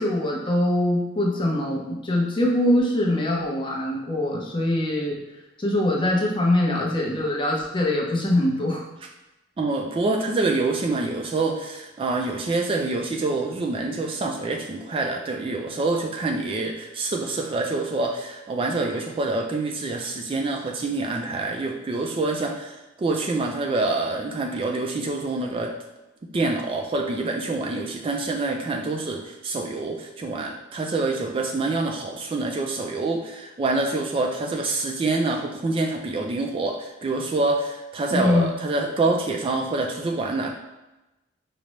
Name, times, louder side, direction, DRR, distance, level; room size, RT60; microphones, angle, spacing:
voice 1, 0.0-5.2 5.6-8.8 38.1-38.5, left 1 dB, 25° left, -2 dB, 0.6 m, -23 dB
voice 2, 9.6-25.7 26.3-40.5, right 3 dB, 30° right, 1 dB, 0.3 m, -26 dB
4.9 x 2.1 x 3.0 m, 1.0 s
head